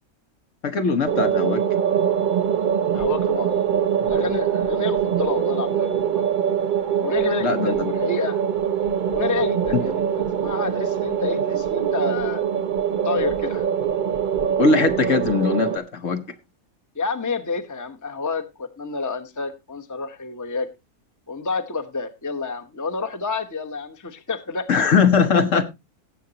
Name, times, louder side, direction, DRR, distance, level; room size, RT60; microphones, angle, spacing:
voice 1, 0.6-1.6 7.4-7.9 9.7-9.8 14.6-16.2 24.7-25.6, left 5 dB, 60° left, 1.5 m, -20 dB
sound 1, 1.1-15.8, right 8 dB, 45° right, 0.7 m, -23 dB
voice 2, 2.9-6.2 7.0-8.4 9.1-12.4 13.0-13.6 16.9-20.7 21.3-24.9, left 4 dB, 15° left, 0.9 m, -29 dB
17.0 x 7.7 x 2.8 m
omnidirectional pair, 1.5 m